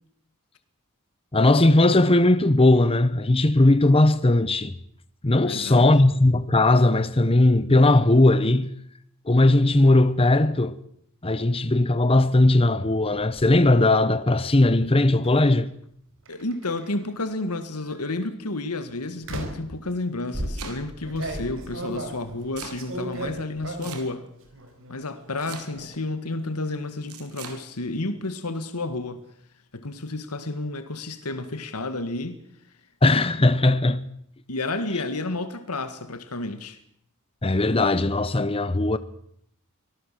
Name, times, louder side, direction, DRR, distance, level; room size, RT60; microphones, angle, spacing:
voice 1, 1.3-4.7 5.2-8.7 9.3-10.8 11.2-15.7 33.0-34.1 37.4-39.0, left 2 dB, 25° left, 0.9 m, -18 dB
voice 2, 5.4-5.9 16.3-24.3 24.9-29.2 29.7-32.4 34.5-36.8, left 2 dB, 90° left, 1.9 m, -31 dB
sound 1, 13.0-13.5 15.2-15.5 16.3-17.1 17.8-18.1 19.2-19.7 20.3-24.1 24.5-25.0 25.3-25.9, right 1 dB, 60° right, 5.0 m, -35 dB
Domestic sounds home sounds, 20.0-21.1 22.1-22.8 23.8-24.4 25.4-26.0 27.1-27.6, right 5 dB, 80° right, 4.1 m, -40 dB
24.5 x 18.0 x 7.6 m
head